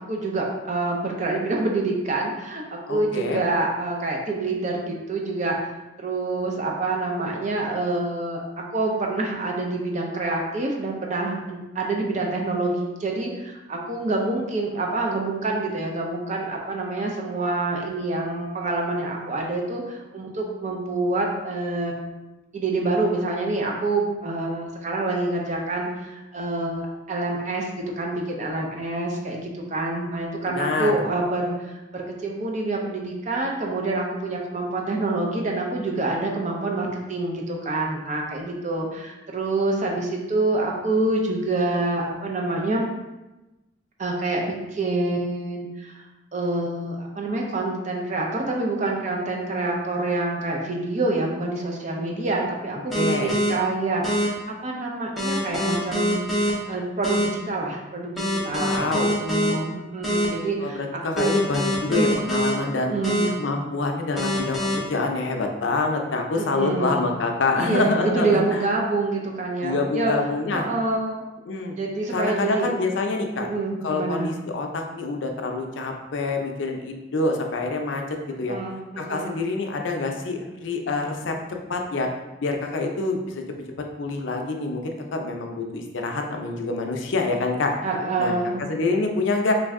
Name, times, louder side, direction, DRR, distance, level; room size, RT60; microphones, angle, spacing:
voice 1, 0.1-5.6 6.0-22.1 22.5-42.9 44.0-45.9 46.3-58.9 59.2-61.3 61.9-62.1 62.8-63.3 66.4-67.0 67.6-70.1 70.5-71.2 71.8-72.7 73.4-74.3 78.5-79.4 87.8-88.6, right 2 dB, 40° right, 0 dB, 0.5 m, -27 dB
voice 2, 2.9-3.4 30.4-30.9 52.9-53.3 58.5-59.1 60.6-62.9 63.4-68.6 69.6-70.7 71.5-71.8 72.1-73.5 73.8-78.0 78.4-78.6 79.0-81.4 81.7-82.1 82.4-83.4 84.0-87.7 88.2-88.4 88.7-89.5, left 3 dB, 70° left, 3 dB, 0.5 m, -26 dB
sound 1, 52.9-53.5 54.0-54.3 55.2-56.5 57.0-57.2 58.2-59.5 60.0-60.3 61.2-62.5 63.0-63.3 64.2-64.7, equal, ahead, 0.7 m, -24 dB
3.2 x 2.6 x 3.5 m, 1.0 s
head